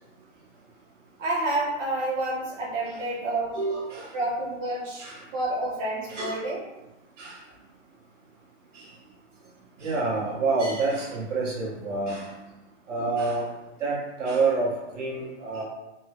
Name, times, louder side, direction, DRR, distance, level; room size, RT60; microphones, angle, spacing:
voice 1, 1.2-3.6 4.1-6.6, right 2 dB, 90° right, -8 dB, 1.1 m, -29 dB
voice 2, 3.5-4.1 5.0-5.2 6.1-6.4 7.2-7.4 8.7-8.9 9.8-12.3 12.9-13.4 13.8-15.6, right 3 dB, 70° right, -5 dB, 1.5 m, -28 dB
3.5 x 2.2 x 2.9 m, 1.0 s
hypercardioid pair, 155°, 38 cm